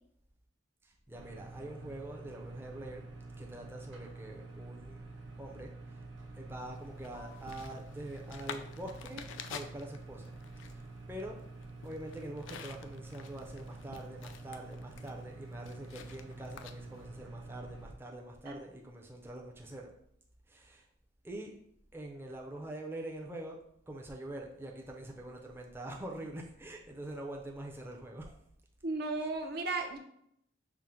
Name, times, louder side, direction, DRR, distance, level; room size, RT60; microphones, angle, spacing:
voice 1, 0.8-5.0 5.4-6.0 6.4-10.3 10.7-11.4 11.8-19.9 20.5-20.9 21.2-21.5 21.9-23.6 23.9-28.4, right 1 dB, 10° right, 0 dB, 0.5 m, -45 dB
sound 1, 1.1-17.9, right 3 dB, 90° right, 0.7 m, -48 dB
sound 2, 6.7-17.1, left 7 dB, 85° left, 0.4 m, -50 dB
voice 2, 28.8-30.0, right 3 dB, 55° right, 4 dB, 0.5 m, -35 dB
5.8 x 2.0 x 3.7 m, 0.72 s
head